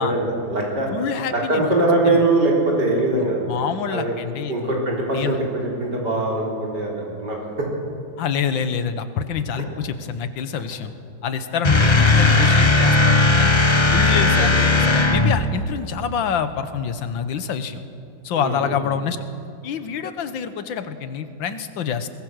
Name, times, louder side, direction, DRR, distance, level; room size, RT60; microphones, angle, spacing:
voice 1, 0.0-0.9 1.3-4.1 4.5-7.7 9.5-9.6 14.1-14.5 18.4-18.8, right 2 dB, 55° right, -2 dB, 4.7 m, -22 dB
voice 2, 0.9-1.7 2.1-2.2 3.5-4.7 5.1-5.4 8.2-10.9 11.2-13.5 13.9-17.8 18.2-19.2 19.6-22.1, left 7 dB, 75° left, 11 dB, 1.7 m, -26 dB
sound 1, 11.6-15.6, left 3 dB, 25° left, 0.6 m, -16 dB
22.0 x 20.0 x 6.4 m, 2.7 s
omnidirectional pair, 2.2 m